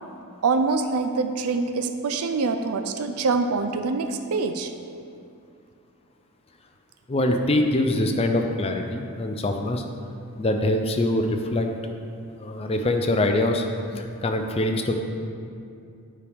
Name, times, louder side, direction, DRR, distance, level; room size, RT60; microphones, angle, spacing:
voice 1, 0.4-4.7, right 4 dB, 85° right, 7 dB, 0.5 m, -25 dB
voice 2, 7.1-9.8 10.4-11.7 12.4-13.6 14.0-14.9, left 1 dB, 25° left, 4 dB, 0.4 m, -24 dB
9.5 x 4.9 x 3.5 m, 2.5 s
head